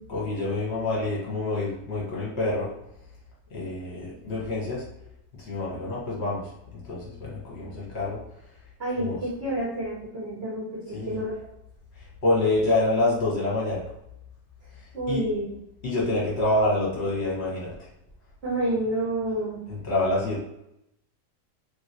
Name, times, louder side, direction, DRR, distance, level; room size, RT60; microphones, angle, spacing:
voice 1, 0.1-2.7 3.5-4.8 5.5-6.5 6.8-8.2 9.0-9.2 10.9-11.2 12.2-13.8 15.1-15.3 15.8-17.7 19.7-20.4, left 2 dB, 45° left, -5 dB, 1.1 m, -26 dB
voice 2, 8.8-11.3 14.9-15.6 18.4-19.6, right 1 dB, 45° right, -4 dB, 0.9 m, -29 dB
3.0 x 3.0 x 2.7 m, 0.84 s
omnidirectional pair, 1.8 m